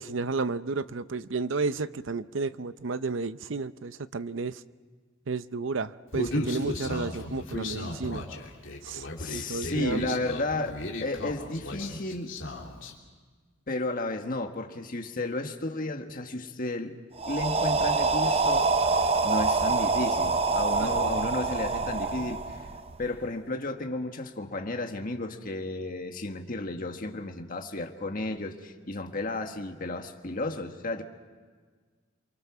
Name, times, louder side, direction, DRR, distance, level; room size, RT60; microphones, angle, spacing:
voice 1, 0.0-4.6 5.3-8.3 8.8-9.1 9.3-10.2 20.8-20.9, right 4 dB, 65° right, 14 dB, 0.6 m, -32 dB
Human voice, 6.1-12.9, left 1 dB, 65° left, 3.2 m, -35 dB
voice 2, 9.2-12.3 13.7-16.9 17.2-18.7 19.2-22.6 23.0-31.0, left 2 dB, 45° left, 5 dB, 1.5 m, -33 dB
sound 1, 17.2-23.1, right 4 dB, 30° right, 0.7 m, -26 dB
28.5 x 24.0 x 6.0 m, 1.5 s
head